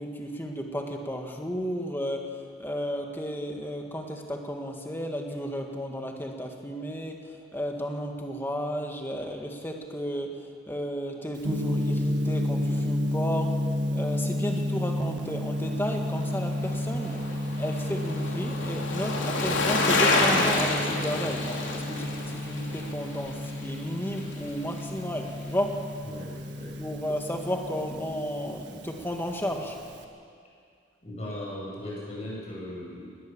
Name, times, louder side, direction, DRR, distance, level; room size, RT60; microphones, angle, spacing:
voice 1, 0.0-13.6 13.9-17.2 17.6-25.8 26.8-29.8, equal, 10° left, 2 dB, 1.8 m, -33 dB
Gong, 11.4-30.0, left 1 dB, 70° right, 1.6 m, -32 dB
Bicycle, 16.1-24.5 24.8-24.9, left 2 dB, 90° left, 3.1 m, -29 dB
voice 2, 31.0-33.1, left 1 dB, 35° left, -4 dB, 7.8 m, -37 dB
20.0 x 19.0 x 7.3 m, 2.3 s
head